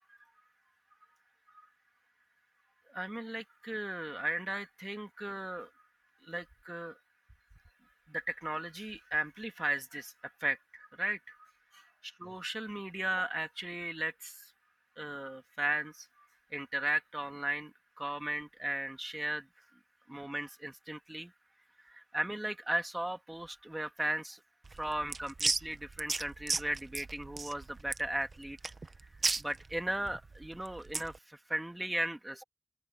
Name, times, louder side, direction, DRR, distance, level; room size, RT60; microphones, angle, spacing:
voice 1, 2.9-5.7 6.3-6.9 8.1-10.1 10.4-11.2 12.2-14.3 15.0-16.0 16.5-17.7 18.0-19.4 20.1-21.3 22.1-24.4 24.8-28.6 29.4-31.1 31.5-32.4, right 1 dB, 15° right, 1.9 m, -36 dB
sound 1, 24.6-31.2, right 3 dB, 60° right, 0.8 m, -36 dB
open air
wide cardioid pair, 90°, 0 cm